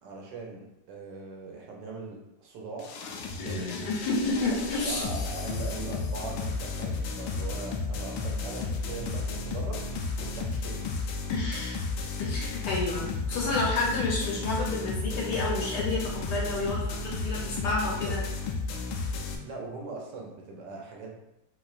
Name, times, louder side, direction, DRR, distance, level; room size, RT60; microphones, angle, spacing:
voice 1, 0.0-3.0 3.4-3.8 4.4-4.5 4.9-10.9 17.8-18.2 19.4-21.3, right 3 dB, 75° right, -1 dB, 1.2 m, -41 dB
sound 1, 2.8-19.4, left 4 dB, 90° left, 1.4 m, -33 dB
voice 2, 3.4-5.1 11.3-11.8 12.2-18.2, left 2 dB, 65° left, -3 dB, 1.3 m, -30 dB
4.2 x 3.0 x 2.4 m, 0.91 s
omnidirectional pair, 2.1 m